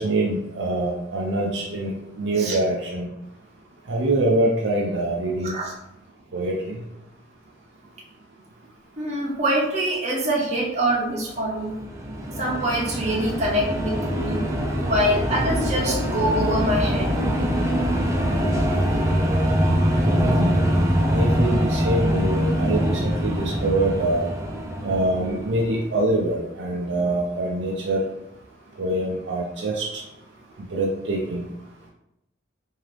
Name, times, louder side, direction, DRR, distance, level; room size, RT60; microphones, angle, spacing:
voice 1, 0.0-1.9 2.2-3.1 3.9-5.5 6.3-6.5 20.1-20.7 21.0-24.3 24.8-28.0 28.8-30.0 30.7-31.4, right 1 dB, 65° right, -3 dB, 0.5 m, -24 dB
voice 2, 9.0-11.8 12.4-14.4 14.9-17.1 18.7-18.8, right 1 dB, 35° right, -3 dB, 0.9 m, -24 dB
sound 1, 11.5-26.0, equal, 15° right, 0.4 m, -23 dB
3.8 x 2.8 x 3.3 m, 0.85 s
head